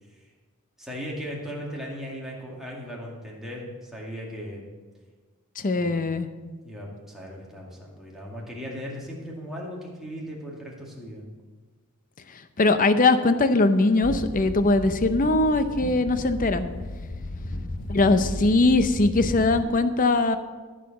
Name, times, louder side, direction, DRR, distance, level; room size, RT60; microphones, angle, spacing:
voice 1, 0.8-4.7 5.7-6.1 6.6-11.3 17.2-17.5, equal, ahead, -4 dB, 2.2 m, -37 dB
voice 2, 5.6-6.3 12.6-16.7 17.9-20.4, left 2 dB, 40° left, 10 dB, 0.6 m, -21 dB
sound 1, 14.0-19.6, left 1 dB, 65° left, 1.1 m, -34 dB
14.0 x 5.0 x 7.1 m, 1.4 s
head